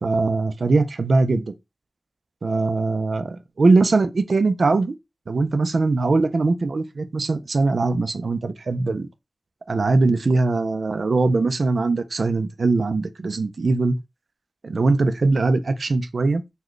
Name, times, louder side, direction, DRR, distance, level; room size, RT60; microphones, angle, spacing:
voice 1, 0.0-1.5 2.4-4.9 5.3-9.1 9.7-13.9 14.6-16.4, right 3 dB, 80° right, 0.4 m, -21 dB
3.8 x 2.2 x 3.1 m
wide cardioid pair, 50°, 0 cm